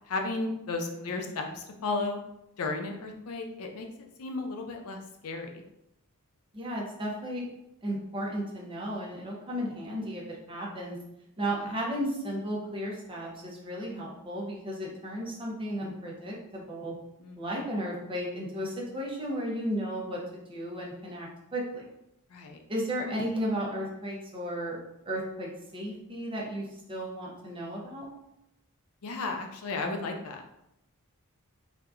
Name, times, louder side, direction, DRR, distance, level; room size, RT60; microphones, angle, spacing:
voice 1, 0.1-2.2 2.6-3.9 4.2-5.0 5.2-5.6 17.2-17.4 22.3-22.6 29.0-30.4, left 3 dB, 75° left, 3 dB, 0.5 m, -34 dB
voice 2, 0.9-1.3 6.5-7.5 7.8-11.0 11.4-16.9 17.4-21.8 22.7-24.8 25.1-28.1, equal, 25° right, -3 dB, 0.7 m, -34 dB
3.4 x 2.7 x 2.4 m, 0.83 s
head